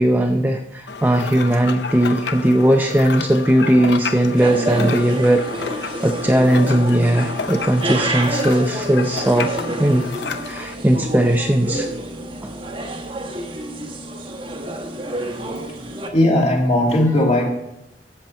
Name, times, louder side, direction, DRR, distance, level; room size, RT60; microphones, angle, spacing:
voice 1, 0.0-5.5 5.8-10.1 10.4-11.9 12.4-12.5, right 1 dB, 10° right, 3 dB, 0.5 m, -18 dB
sound 1, 0.9-10.7, left 5 dB, 75° left, 0.7 m, -31 dB
sound 2, 4.4-16.1, right 1 dB, 30° right, 1.1 m, -28 dB
voice 2, 15.1-15.8 16.1-17.5, left 1 dB, 35° left, -1 dB, 2.4 m, -18 dB
13.0 x 7.8 x 4.5 m, 0.87 s
head